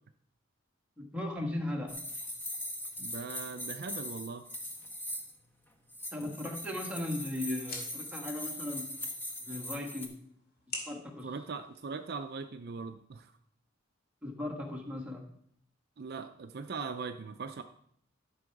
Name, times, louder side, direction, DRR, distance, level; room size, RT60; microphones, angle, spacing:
voice 1, 1.0-2.0 6.1-8.9 9.4-10.1 10.8-11.3 14.2-15.2, left 1 dB, 5° right, -1 dB, 1.6 m, -37 dB
sound 1, 1.9-5.4 5.9-10.1, left 1 dB, 10° left, 1.2 m, -40 dB
voice 2, 3.0-4.4 11.2-13.3 16.0-17.6, right 4 dB, 55° right, 8 dB, 0.5 m, -40 dB
sound 2, 6.4-12.4, left 3 dB, 50° left, 2.2 m, -49 dB
11.5 x 6.1 x 4.7 m, 0.69 s
head